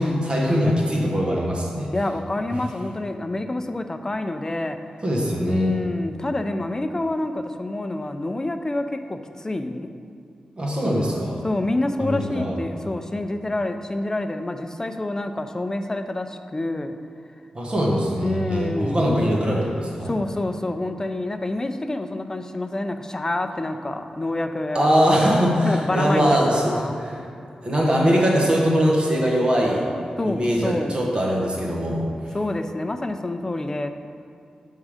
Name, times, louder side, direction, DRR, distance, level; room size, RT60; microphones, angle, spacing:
voice 1, 0.0-1.9 5.0-5.8 10.6-11.4 12.0-12.5 17.5-20.1 24.7-27.2 27.6-29.9 30.2-32.1, equal, 40° right, -3 dB, 1.0 m, -21 dB
voice 2, 1.9-4.8 5.4-9.9 11.4-16.9 18.2-19.1 20.0-24.9 25.6-27.0 30.2-31.0 32.3-33.9, left 2 dB, 25° left, 7 dB, 0.4 m, -27 dB
7.4 x 3.7 x 4.9 m, 2.5 s
cardioid pair, 80°, 2 cm